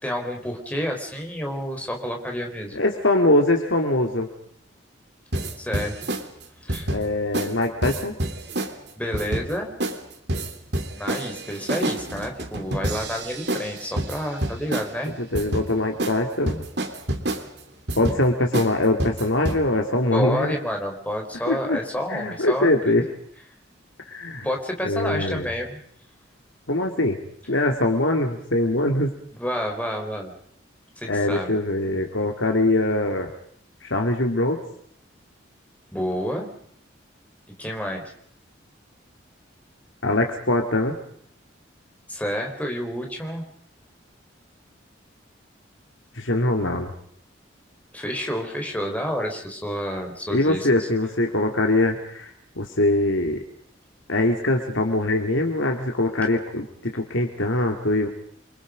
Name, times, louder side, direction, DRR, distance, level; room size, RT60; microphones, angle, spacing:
voice 1, 0.0-2.8 5.6-6.1 6.6-6.9 8.9-9.7 11.0-15.1 20.1-22.9 24.4-25.8 29.3-30.3 31.0-31.5 35.9-36.5 37.6-38.1 42.1-43.5 47.9-50.9, equal, 10° left, 2 dB, 4.6 m, -29 dB
voice 2, 2.7-4.3 6.9-8.2 15.2-16.7 17.9-20.5 21.5-21.8 22.1-23.1 24.1-24.5 24.8-25.5 26.7-27.2 27.5-29.1 31.1-33.3 33.8-34.6 40.0-41.0 46.1-46.9 50.3-53.4 54.1-58.1, left 1 dB, 85° left, 3 dB, 2.6 m, -22 dB
sound 1, 5.3-6.2 6.7-7.0 7.3-7.5 7.8-8.7 9.1-9.5 9.8-10.0 10.3-14.9 15.3-15.7 16.0-16.2 16.5-17.4 17.9-18.2 18.5-18.7 19.0-19.6, right 1 dB, 60° right, 3.1 m, -27 dB
29.5 x 24.5 x 5.3 m, 0.65 s
head